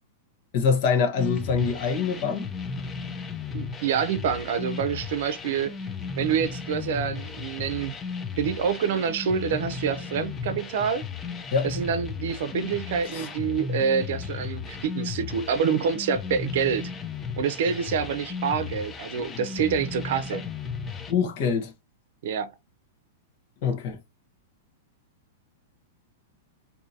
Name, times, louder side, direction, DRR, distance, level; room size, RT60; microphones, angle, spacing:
voice 1, 0.5-2.5 11.5-11.7 13.1-13.3 19.3-19.4 20.3-20.4 21.1-21.7 23.6-24.0, left 6 dB, 55° left, 1.0 m, -25 dB
sound 1, 1.2-21.1, left 5 dB, 20° left, 0.5 m, -35 dB
voice 2, 3.5-5.7 6.2-7.9 8.4-11.0 11.6-16.9 17.4-20.4 22.2-22.5, right 7 dB, 65° right, 0.6 m, -27 dB
3.8 x 2.7 x 2.7 m
hypercardioid pair, 130°, 0 cm